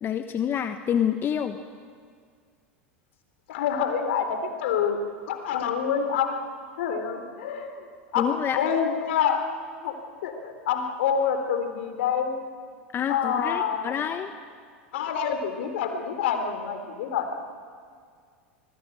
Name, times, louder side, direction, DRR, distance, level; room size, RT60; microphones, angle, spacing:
voice 1, 0.0-1.6 8.2-8.6 12.9-14.3, left 9 dB, 35° left, 8 dB, 1.2 m, -27 dB
voice 2, 3.5-5.0 5.3-6.4 6.8-7.9 8.1-9.4 9.8-10.0 10.2-12.4 13.1-14.2 14.9-17.3, left 7 dB, 65° left, 6 dB, 3.8 m, -27 dB
26.0 x 19.5 x 9.1 m, 2.1 s
hypercardioid pair, 90°, 7 cm